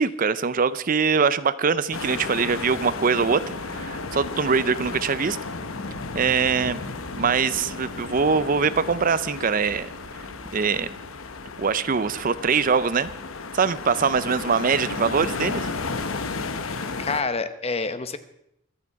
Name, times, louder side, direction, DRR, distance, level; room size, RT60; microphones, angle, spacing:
voice 1, 0.0-3.4 3.7-5.4 6.1-6.8 7.2-9.9 10.5-10.9 11.6-13.1 13.5-15.7, right 5 dB, 40° right, 15 dB, 0.5 m, -23 dB
sound 1, 1.9-17.2, left 4 dB, 90° left, 1.0 m, -33 dB
sound 2, 2.5-11.1, right 2 dB, 80° right, 1.2 m, -47 dB
voice 2, 17.0-18.2, left 4 dB, 30° left, 11 dB, 0.9 m, -27 dB
24.5 x 8.6 x 4.7 m, 0.79 s
head